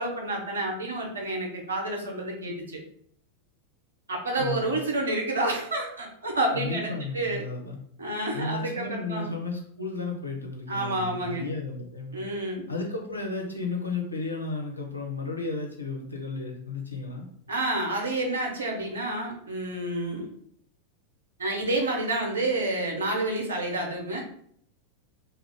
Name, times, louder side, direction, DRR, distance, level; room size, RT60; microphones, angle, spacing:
voice 1, 0.0-2.8 4.1-7.4 8.0-9.3 10.7-11.4 12.1-12.7 17.5-20.3 21.4-24.2, right 2 dB, 70° right, 0 dB, 0.8 m, -29 dB
voice 2, 4.4-4.7 6.5-7.8 8.3-12.2 12.7-17.3, left 3 dB, 80° left, 0 dB, 0.7 m, -33 dB
2.7 x 2.4 x 3.4 m, 0.65 s
figure-of-eight pair, 90°, 0 cm